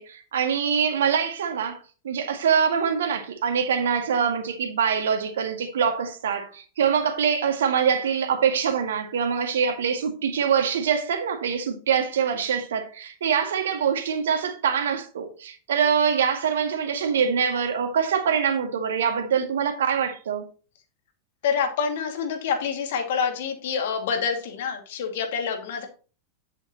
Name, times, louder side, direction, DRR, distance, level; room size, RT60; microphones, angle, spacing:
voice 1, 0.0-1.8 2.0-20.5, right 7 dB, 65° right, 1.9 m, -24 dB
voice 2, 21.4-25.9, left 6 dB, 55° left, 2.3 m, -27 dB
10.0 x 7.9 x 3.0 m
figure-of-eight pair, 90°, 0 cm